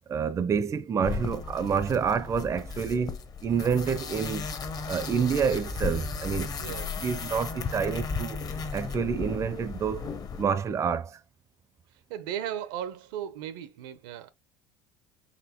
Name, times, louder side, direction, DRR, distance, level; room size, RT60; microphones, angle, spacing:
voice 1, 0.1-4.5 4.9-8.4 8.7-10.1 10.4-11.2, right 6 dB, 30° right, 0.4 m, -28 dB
sound 1, 1.0-10.4, left 5 dB, 35° left, 0.7 m, -35 dB
voice 2, 6.6-7.0 12.1-14.3, right 10 dB, 85° right, 0.6 m, -36 dB
4.2 x 3.0 x 2.9 m
supercardioid pair, 105°, 11 cm